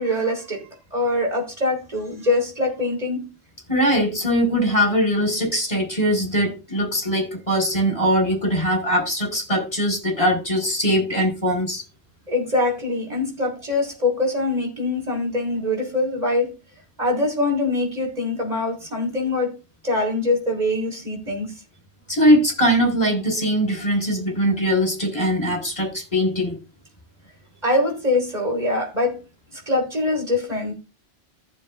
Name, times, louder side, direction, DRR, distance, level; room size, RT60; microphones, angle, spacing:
voice 1, 0.0-3.3 12.3-16.6 17.0-19.6 19.8-21.5 27.6-29.2 29.5-30.7, left 2 dB, 35° right, 4.3 m, -23 dB
voice 2, 3.7-11.8 22.1-26.6, equal, 30° left, 5.6 m, -21 dB
15.0 x 7.5 x 2.6 m
omnidirectional pair, 1.2 m